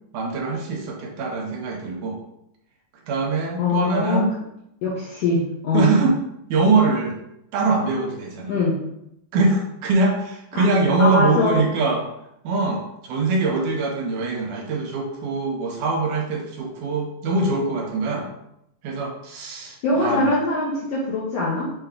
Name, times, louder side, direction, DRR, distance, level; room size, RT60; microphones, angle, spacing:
voice 1, 0.1-2.2 3.1-4.3 5.7-6.2 6.5-7.2 7.5-8.5 9.3-12.0 12.4-18.3 18.8-20.3, right 3 dB, 75° right, 0 dB, 2.1 m, -23 dB
voice 2, 3.6-4.3 4.8-5.9 8.5-8.8 10.5-10.6 11.0-11.6 19.8-21.7, left 2 dB, 85° left, -6 dB, 1.4 m, -22 dB
6.0 x 2.2 x 3.6 m, 0.80 s
omnidirectional pair, 3.9 m